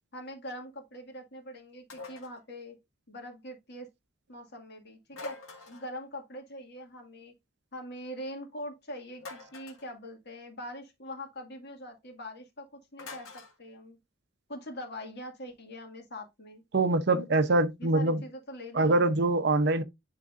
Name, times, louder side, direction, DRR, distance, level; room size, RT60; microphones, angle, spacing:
voice 1, 0.1-2.8 3.1-3.9 4.3-5.4 5.7-7.3 7.7-12.7 12.9-14.0 14.5-16.6 17.8-19.1, left 1 dB, 50° left, 1.9 m, -43 dB
sound 1, 1.9-2.4 5.1-5.9 9.2-9.9 13.0-13.5, left 3 dB, 85° left, 1.8 m, -44 dB
voice 2, 16.7-18.2 18.7-19.8, right 2 dB, 50° right, 0.7 m, -24 dB
10.5 x 3.8 x 2.5 m
head